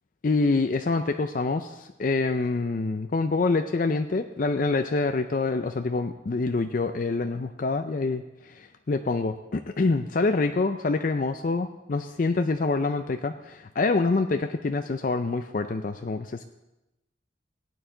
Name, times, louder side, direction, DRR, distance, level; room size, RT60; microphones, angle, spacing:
voice 1, 0.2-16.4, left 3 dB, 45° left, 7 dB, 0.4 m, -26 dB
17.0 x 9.3 x 3.8 m, 0.96 s
head